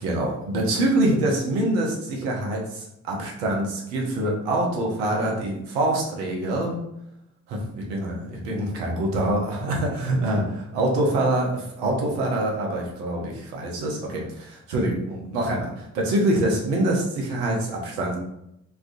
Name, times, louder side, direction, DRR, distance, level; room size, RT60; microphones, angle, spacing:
voice 1, 0.0-6.8 7.5-18.2, right 1 dB, 80° right, -1 dB, 0.8 m, -25 dB
3.4 x 2.3 x 2.6 m, 0.81 s
hypercardioid pair, 45°, 39 cm